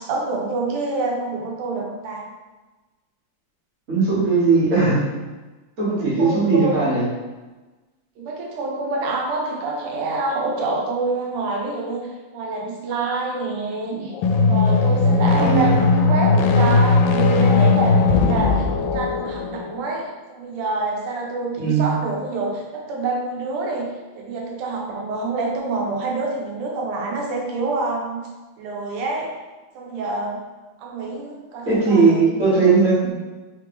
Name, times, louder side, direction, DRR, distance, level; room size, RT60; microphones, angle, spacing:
voice 1, 0.0-2.2 4.9-5.0 5.8-6.9 8.2-12.1 12.3-28.3 28.6-29.3 29.7-30.4 30.8-32.7, right 3 dB, 85° right, -1 dB, 1.6 m, -27 dB
voice 2, 3.9-5.0 5.8-7.0 15.3-15.8 21.6-21.9 31.6-33.1, right 4 dB, 40° right, -8 dB, 1.6 m, -18 dB
sound 1, 14.1-19.8, left 4 dB, 80° left, 1.5 m, -18 dB
3.8 x 3.3 x 3.3 m, 1.2 s
omnidirectional pair, 2.4 m